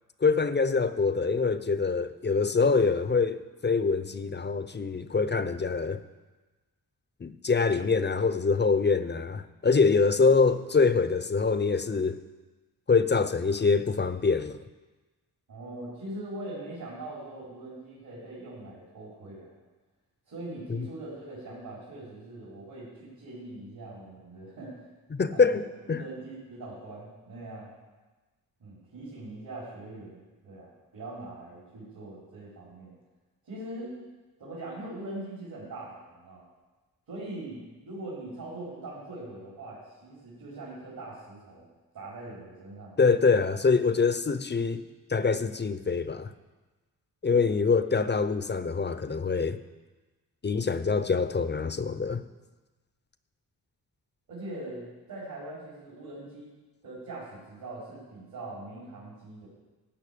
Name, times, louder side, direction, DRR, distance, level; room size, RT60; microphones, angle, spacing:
voice 1, 0.2-6.0 7.2-12.2 12.9-14.6 20.7-20.8 25.1-26.0 43.0-44.8 45.1-46.3 47.2-49.6 50.4-52.2, left 4 dB, 30° left, 12 dB, 0.7 m, -25 dB
voice 2, 15.5-19.5 20.3-24.7 25.3-25.7 25.9-27.7 28.6-32.9 33.4-33.9 34.4-36.4 37.1-41.7 41.9-43.1 47.3-47.5 54.3-56.5 56.8-59.5, right 2 dB, 70° right, -8 dB, 4.8 m, -42 dB
16.0 x 5.6 x 8.6 m, 1.2 s
cardioid pair, 80°, 38 cm